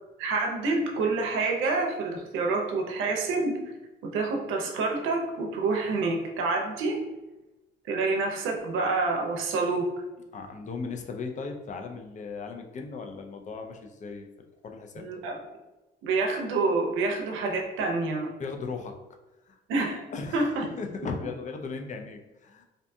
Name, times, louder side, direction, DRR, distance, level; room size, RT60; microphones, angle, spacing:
voice 1, 0.2-3.6 4.0-7.0 7.9-9.9 15.0-15.4 16.0-18.3 19.7-20.0 20.3-20.6, right 3 dB, 90° right, 1 dB, 0.5 m, -27 dB
voice 2, 10.3-14.3 14.6-15.1 18.4-18.9 19.5-19.6 20.1-22.6, left 4 dB, 40° left, 4 dB, 0.4 m, -37 dB
2.5 x 2.2 x 2.6 m, 1.1 s
cardioid pair, 90°, 20 cm